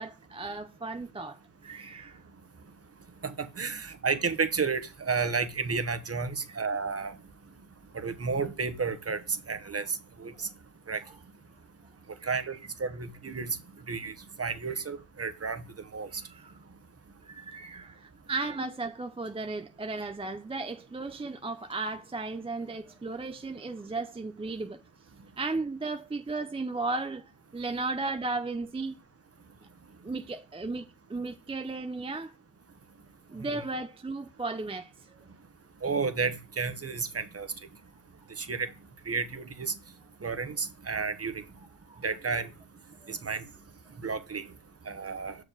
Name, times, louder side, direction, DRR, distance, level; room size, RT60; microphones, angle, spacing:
voice 1, 0.0-2.2 6.5-6.6 10.3-10.4 12.2-12.6 14.7-14.8 16.1-16.5 17.2-24.8 25.4-29.0 30.0-32.3 33.3-35.1 41.9-42.0 43.0-43.1, right 3 dB, 15° right, 0.5 m, -35 dB
voice 2, 3.6-7.1 8.0-9.2 9.5-9.8 10.2-10.3 10.9-11.0 12.3-13.6 13.9-14.1 14.4-15.6 15.9-16.1 35.8-37.5 38.4-38.7 39.1-39.7 40.2-41.3 42.0-42.5 43.1-43.4 44.0-44.4 44.9-45.3, right 5 dB, 35° right, 1.2 m, -31 dB
6.5 x 4.9 x 3.9 m
cardioid pair, 70°, 44 cm